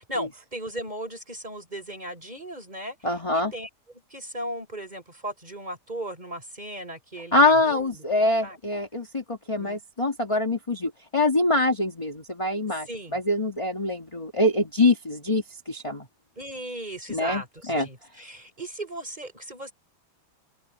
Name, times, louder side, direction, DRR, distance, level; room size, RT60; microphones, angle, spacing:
voice 1, 0.1-3.0 3.3-3.7 4.1-8.0 8.4-8.6 9.6-9.8 12.9-13.2 16.4-19.7, right 1 dB, 20° right, 6.5 m, -36 dB
voice 2, 3.0-3.5 7.3-16.1 17.1-17.4 17.7-17.9, left 2 dB, 15° left, 1.9 m, -24 dB
omnidirectional pair, 2.3 m